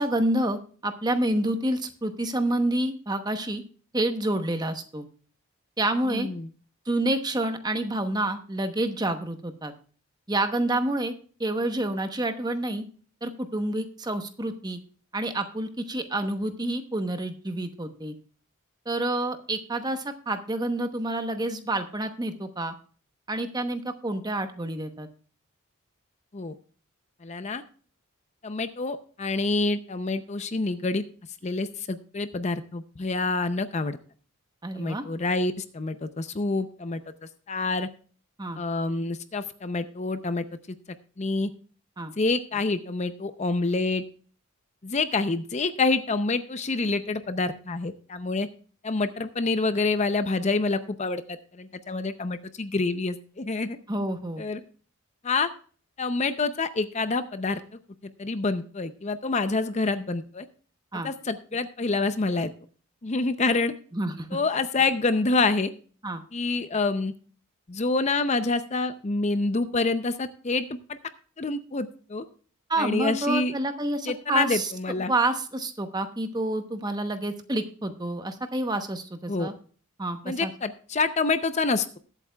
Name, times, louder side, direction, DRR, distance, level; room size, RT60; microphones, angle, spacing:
voice 1, 0.0-3.6 3.9-5.1 5.8-6.3 6.9-9.7 10.3-11.1 11.4-12.8 13.2-14.8 15.1-18.1 18.9-22.7 23.3-25.1 34.6-35.0 38.4-38.6 42.0-42.1 53.9-54.4 60.9-61.1 63.9-64.3 66.0-66.2 72.7-74.7 75.1-79.5 80.0-80.5, right 1 dB, 20° right, 8 dB, 0.9 m, -28 dB
voice 2, 6.1-6.5 26.3-26.5 27.2-27.6 28.4-31.0 31.4-34.0 34.8-37.0 37.5-37.9 38.6-40.4 41.2-41.5 42.2-44.0 44.8-48.5 48.8-53.8 54.4-54.6 55.2-55.5 56.0-57.6 58.2-60.5 61.0-62.5 63.0-63.7 64.3-65.7 66.3-67.1 67.7-71.0 71.4-72.2 72.8-73.5 74.1-75.1 79.3-79.5 80.3-82.0, left 3 dB, 30° left, 11 dB, 0.6 m, -27 dB
21.0 x 8.2 x 2.3 m, 0.42 s
head